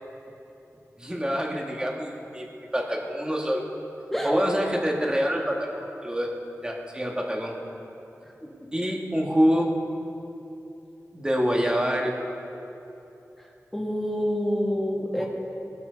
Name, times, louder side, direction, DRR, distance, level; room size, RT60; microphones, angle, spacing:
voice 1, 1.0-2.5 2.7-3.6 4.2-5.7 6.0-6.3 6.6-7.6 8.7-9.7 11.1-12.2 15.2-15.3, equal, 15° right, -1 dB, 2.0 m, -26 dB
voice 2, 4.1-4.4 8.2-8.5 13.4-15.3, equal, 5° left, -3 dB, 2.4 m, -28 dB
21.0 x 12.0 x 4.1 m, 2.9 s
wide cardioid pair, 85°, 6 cm